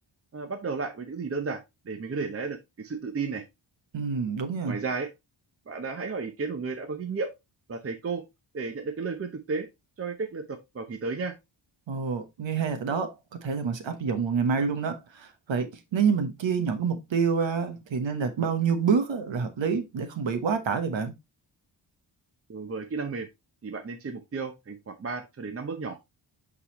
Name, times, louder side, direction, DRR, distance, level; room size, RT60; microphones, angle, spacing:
voice 1, 0.3-3.4 4.7-5.1 5.7-7.3 7.7-8.3 8.5-9.7 10.0-11.3 22.5-23.3 23.6-26.0, right 4 dB, 30° right, 0.7 m, -33 dB
voice 2, 3.9-4.8 11.9-13.1 13.4-21.1, right 6 dB, 75° right, 1.2 m, -27 dB
8.7 x 4.1 x 3.0 m
wide cardioid pair, 155°, 46 cm